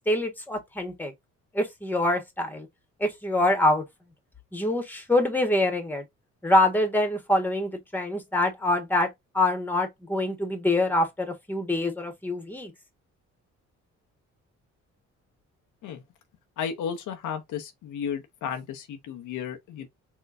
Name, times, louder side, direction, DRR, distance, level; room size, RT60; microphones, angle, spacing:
voice 1, 0.1-1.1 1.5-2.7 3.0-3.8 4.5-6.0 6.4-9.1 9.3-12.7, left 1 dB, 5° left, 1.5 m, -25 dB
voice 2, 16.6-19.9, left 7 dB, 85° left, 0.9 m, -33 dB
4.4 x 3.0 x 2.6 m
cardioid pair, 90°, 30 cm